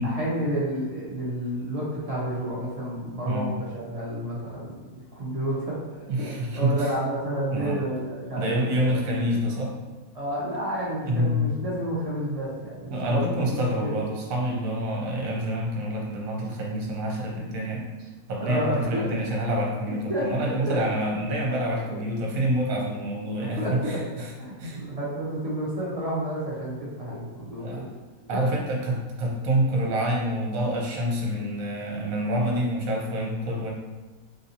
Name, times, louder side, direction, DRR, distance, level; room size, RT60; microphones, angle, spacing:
voice 1, 0.0-9.0 10.1-14.0 18.4-19.1 19.9-20.8 23.4-27.9 28.3-28.4, right 1 dB, 40° right, -7 dB, 0.5 m, -31 dB
voice 2, 6.1-6.9 7.5-7.8 8.4-9.7 11.1-11.4 12.9-24.3 24.6-24.8 27.6-27.9 28.3-33.7, equal, 75° right, -1 dB, 1.1 m, -27 dB
3.3 x 2.6 x 2.7 m, 1.2 s
omnidirectional pair, 1.5 m